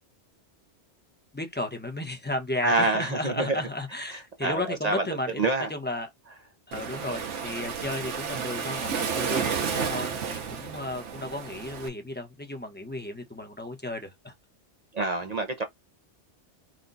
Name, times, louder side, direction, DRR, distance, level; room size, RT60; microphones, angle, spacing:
voice 1, 1.3-5.4 5.7-6.1 6.7-14.3 15.2-15.3, left 1 dB, 10° left, 0.8 m, -34 dB
voice 2, 2.6-3.6 4.4-5.0 5.4-5.7 14.9-15.6, right 2 dB, 45° right, 0.6 m, -26 dB
Waves surf, 6.7-11.9, right 6 dB, 85° right, 1.2 m, -31 dB
4.2 x 2.3 x 3.8 m
omnidirectional pair, 1.2 m